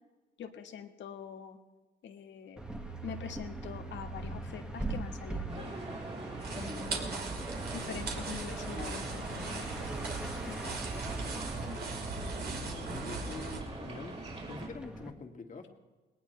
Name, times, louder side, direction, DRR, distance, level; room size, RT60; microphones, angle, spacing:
voice 1, 0.4-1.6 2.0-2.6 3.0-5.8 6.5-7.2 7.7-9.8 10.5-11.1, left 7 dB, 65° left, 5 dB, 1.7 m, -44 dB
sound 1, 2.6-15.1, right 2 dB, 5° right, 1.8 m, -43 dB
sound 2, 5.5-14.7, right 2 dB, 30° right, 5.1 m, -42 dB
sound 3, 6.4-13.6, right 4 dB, 55° right, 3.1 m, -39 dB
voice 2, 12.3-14.1 14.5-15.7, left 4 dB, 40° left, 4 dB, 2.3 m, -45 dB
19.5 x 18.5 x 3.4 m, 1.3 s
cardioid pair, 90°, 20 cm